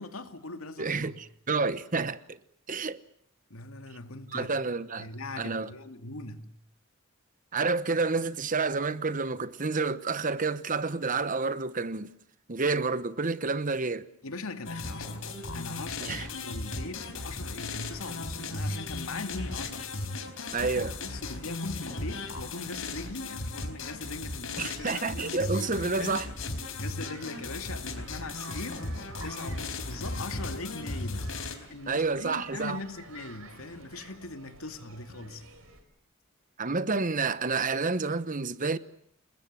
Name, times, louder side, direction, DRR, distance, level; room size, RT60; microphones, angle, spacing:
voice 1, 0.0-1.2 3.5-4.5 5.0-6.5 14.2-19.9 20.6-26.3 26.7-31.4 31.7-35.5, left 2 dB, 90° left, 2.5 m, -40 dB
voice 2, 0.8-2.4 2.7-3.0 4.3-5.1 5.4-5.7 7.5-12.1 12.5-14.1 16.0-16.3 20.5-20.9 24.6-26.3 31.9-32.8 36.6-38.8, right 4 dB, 40° right, 1.1 m, -29 dB
sound 1, 14.7-31.5, left 2 dB, 75° left, 4.2 m, -36 dB
sound 2, 27.0-35.8, right 4 dB, 80° right, 4.8 m, -50 dB
30.0 x 20.5 x 7.6 m
head